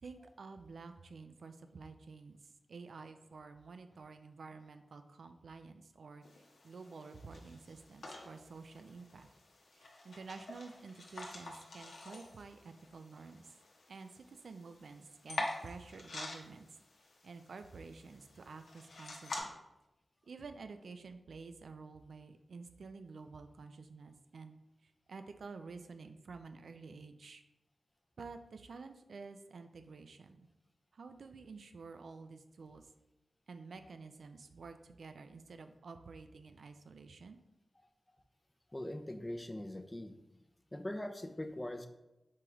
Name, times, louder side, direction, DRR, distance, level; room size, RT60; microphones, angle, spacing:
voice 1, 0.0-2.4 2.7-9.3 9.7-13.6 13.9-16.7 17.2-19.5 20.3-24.6 24.8-27.4 28.2-30.5 30.9-32.9 33.5-37.4, right 4 dB, 80° right, 8 dB, 0.3 m, -50 dB
sound 1, 6.2-19.4, left 2 dB, 90° left, 0.7 m, -47 dB
voice 2, 38.7-40.2 40.7-41.9, left 1 dB, 20° left, 8 dB, 0.4 m, -41 dB
4.6 x 3.6 x 3.0 m, 0.96 s
wide cardioid pair, 75°, 0 cm